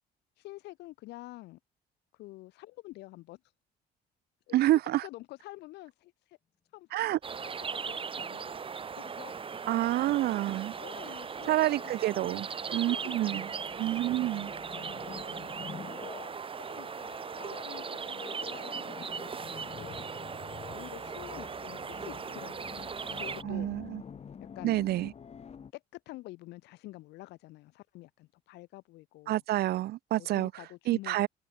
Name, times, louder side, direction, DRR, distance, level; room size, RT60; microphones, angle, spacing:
voice 1, 0.4-1.6 2.1-3.4 4.5-6.4 6.7-8.5 9.0-9.3 10.8-12.4 12.8-13.5 14.0-20.0 20.7-22.8 23.2-23.7 24.4-24.8 25.7-29.4 30.2-31.2, left 18 dB, 85° left, 4.9 m, -48 dB
voice 2, 4.5-5.0 6.9-7.2 9.7-10.7 11.5-12.5 12.7-13.5 13.8-14.5 23.4-24.0 24.6-25.1 29.3-30.5 30.9-31.3, right 15 dB, 70° right, 0.9 m, -28 dB
Benasque Ambience, 7.2-23.4, right 6 dB, 30° right, 3.2 m, -39 dB
sound 1, 9.3-25.7, left 7 dB, 40° left, 3.6 m, -48 dB
cardioid pair, 110°, 17 cm